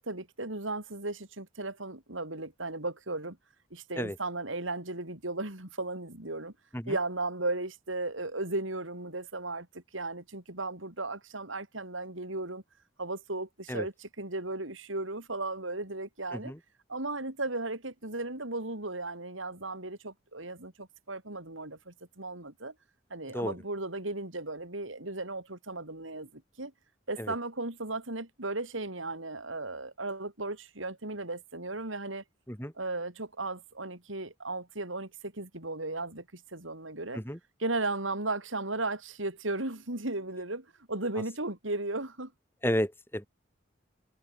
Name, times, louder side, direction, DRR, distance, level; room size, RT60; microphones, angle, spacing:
voice 1, 0.0-3.4 3.7-6.5 6.9-12.6 13.0-16.5 16.9-22.7 23.1-26.7 27.1-32.2 32.8-37.2 37.6-42.3, right 2 dB, 85° right, 5.9 m, -36 dB
voice 2, 42.6-43.3, equal, 10° left, 7.8 m, -32 dB
head